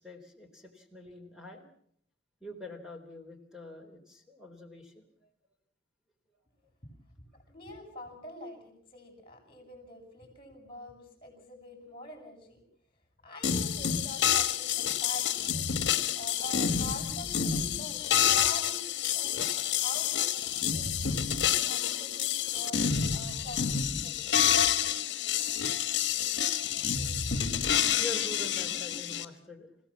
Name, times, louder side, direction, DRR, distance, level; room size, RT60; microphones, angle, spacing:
voice 1, 0.0-1.6 2.4-5.1 28.0-29.7, left 1 dB, 5° right, 3 dB, 3.8 m, -45 dB
voice 2, 7.3-12.6 13.2-15.9 16.1-20.9 21.7-24.3, left 1 dB, 30° left, 4 dB, 7.5 m, -46 dB
sound 1, 13.4-29.2, left 9 dB, 60° left, 1.4 m, -28 dB
28.5 x 16.5 x 7.3 m, 0.68 s
head